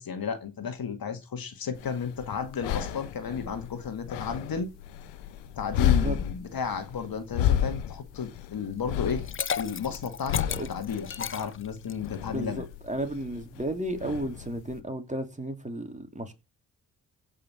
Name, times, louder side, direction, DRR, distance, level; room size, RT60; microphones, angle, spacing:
voice 1, 0.0-4.7 5.6-9.2 9.6-12.6, left 6 dB, 55° left, 2.1 m, -33 dB
sound 1, 1.7-14.8, left 10 dB, 90° left, 1.2 m, -32 dB
voice 2, 5.8-6.2 10.5-10.7 12.3-16.3, right 1 dB, 15° right, 3.3 m, -33 dB
Liquid, 9.1-12.1, left 7 dB, 30° left, 0.6 m, -34 dB
16.0 x 5.7 x 5.7 m
hypercardioid pair, 45°, 42 cm